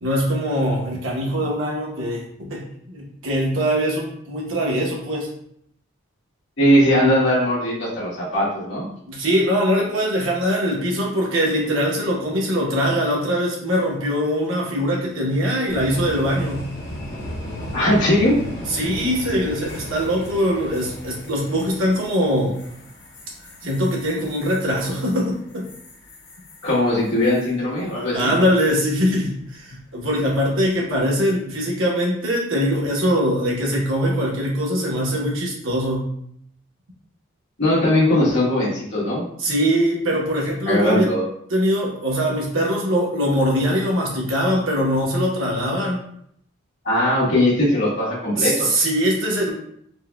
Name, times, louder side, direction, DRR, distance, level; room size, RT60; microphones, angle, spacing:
voice 1, 0.0-5.3 9.1-16.7 18.7-22.6 23.6-25.6 28.1-36.1 39.4-41.1 41.5-46.0 48.4-49.5, equal, 90° right, -2 dB, 1.0 m, -22 dB
voice 2, 6.6-8.9 17.7-18.3 26.6-28.3 37.6-39.2 40.7-41.2 46.8-48.8, left 1 dB, 70° left, -7 dB, 1.4 m, -19 dB
sound 1, 15.7-27.5 27.8-28.3 30.2-30.6, left 1 dB, 50° left, 0.9 m, -36 dB
4.4 x 2.2 x 2.2 m, 0.69 s
head